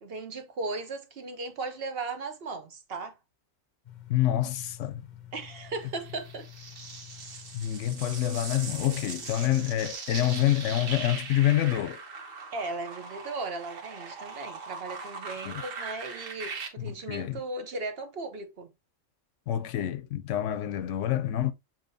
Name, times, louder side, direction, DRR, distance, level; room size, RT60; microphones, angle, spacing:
voice 1, 0.0-3.2 5.3-6.5 12.5-18.7, right 3 dB, 55° right, 1.0 m, -37 dB
sound 1, 3.8-9.9, left 12 dB, 45° left, 0.6 m, -49 dB
voice 2, 4.1-5.1 7.5-12.0 15.4-15.6 16.8-17.4 19.5-21.5, left 12 dB, 75° left, 0.9 m, -27 dB
sound 2, 6.1-16.7, right 4 dB, 80° right, 1.5 m, -40 dB
7.1 x 2.9 x 2.6 m
omnidirectional pair, 1.3 m